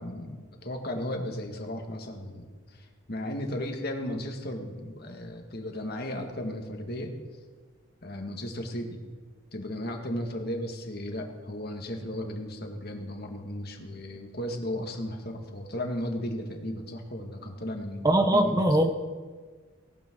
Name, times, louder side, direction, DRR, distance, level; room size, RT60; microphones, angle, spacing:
voice 1, 0.0-7.1 8.0-9.0 9.5-18.7, left 1 dB, 50° left, 3 dB, 2.0 m, -35 dB
voice 2, 18.0-18.9, right 1 dB, 15° right, 5 dB, 0.9 m, -21 dB
18.5 x 18.5 x 3.9 m, 1.5 s
head